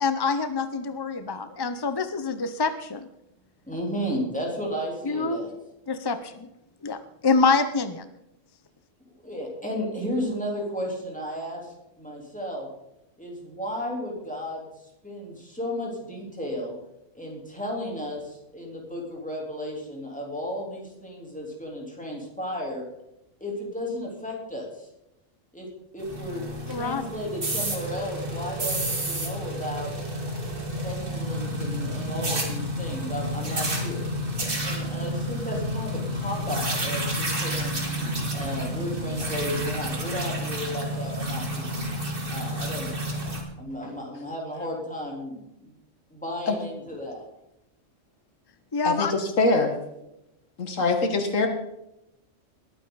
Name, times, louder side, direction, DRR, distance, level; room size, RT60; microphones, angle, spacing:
voice 1, 0.0-3.1 5.0-5.4 5.9-6.5 6.8-8.1 26.7-27.0 48.7-49.1, left 4 dB, 35° left, 11 dB, 0.4 m, -26 dB
voice 2, 3.7-5.6 9.2-12.7 13.2-14.7 15.0-16.8 17.1-22.9 23.4-24.9 25.5-25.7 25.9-29.9 30.8-34.0 34.6-37.8 38.3-41.8 42.3-42.9 43.6-45.7 46.1-47.2, equal, 5° left, -2 dB, 3.5 m, -34 dB
sound 1, 26.0-43.4, equal, 45° right, 2.5 m, -30 dB
voice 3, 48.8-49.7 50.6-51.5, left 3 dB, 85° left, 5 dB, 2.0 m, -23 dB
20.5 x 9.3 x 4.0 m, 0.87 s
omnidirectional pair, 1.3 m